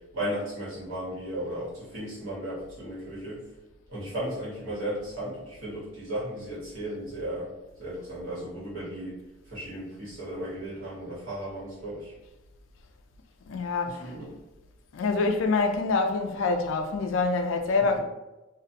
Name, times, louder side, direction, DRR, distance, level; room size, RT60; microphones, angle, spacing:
voice 1, 0.1-3.4 3.9-7.5 7.8-9.2 9.4-12.1 13.8-14.4 17.8-18.0, right 1 dB, 75° right, 1.4 m, -35 dB
voice 2, 13.5-14.1 14.9-18.0, left 3 dB, 65° left, 0.3 m, -26 dB
2.4 x 2.4 x 2.7 m
head